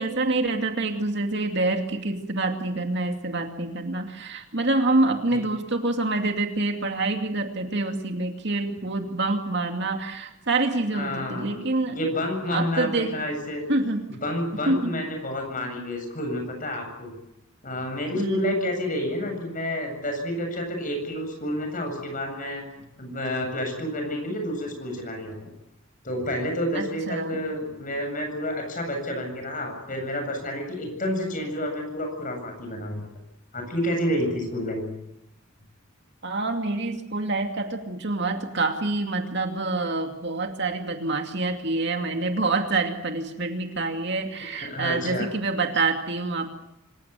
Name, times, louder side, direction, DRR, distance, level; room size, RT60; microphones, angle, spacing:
voice 1, 0.0-12.0 12.5-13.1 13.7-14.0 14.7-15.0 18.1-18.5 26.7-27.4 36.2-46.5, right 2 dB, 55° right, 4 dB, 2.5 m, -26 dB
voice 2, 10.9-11.6 11.9-13.6 14.1-17.1 17.6-22.6 23.0-25.4 26.0-33.0 33.5-34.9 44.6-45.3, left 1 dB, 40° left, 4 dB, 7.9 m, -29 dB
26.0 x 16.5 x 9.2 m, 0.85 s
head